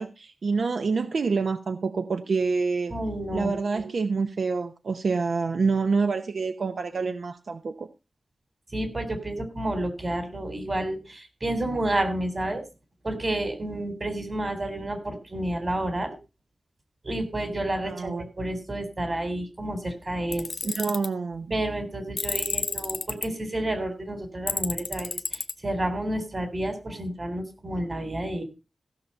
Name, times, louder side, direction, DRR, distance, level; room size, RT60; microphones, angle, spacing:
voice 1, 0.0-2.9 3.3-7.9 17.8-18.2 20.6-21.5, right 4 dB, 75° right, 0.8 m, -27 dB
voice 2, 2.9-4.0 8.7-12.6 13.0-16.2 17.0-20.5 21.5-28.4, right 1 dB, 35° right, 3.7 m, -30 dB
Tools, 20.3-21.1 22.2-23.3 24.5-25.5, left 4 dB, 70° left, 1.0 m, -30 dB
15.5 x 6.7 x 5.4 m
wide cardioid pair, 100°, 0 cm